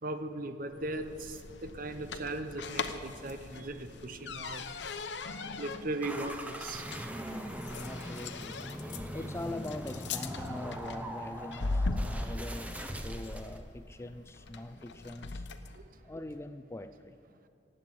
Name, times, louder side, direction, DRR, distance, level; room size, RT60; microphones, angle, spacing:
voice 1, 0.0-4.7 5.6-7.1 7.4-7.5 8.9-9.1 12.2-12.3 15.7-16.0, right 2 dB, 50° right, 0.9 m, -39 dB
sound 1, 0.7-15.8, left 3 dB, 85° left, 0.8 m, -40 dB
sound 2, 6.0-13.6, equal, 10° right, 0.9 m, -41 dB
voice 2, 7.8-8.7 9.1-15.5 16.0-17.2, left 1 dB, 15° left, 0.4 m, -43 dB
16.0 x 7.8 x 9.2 m
head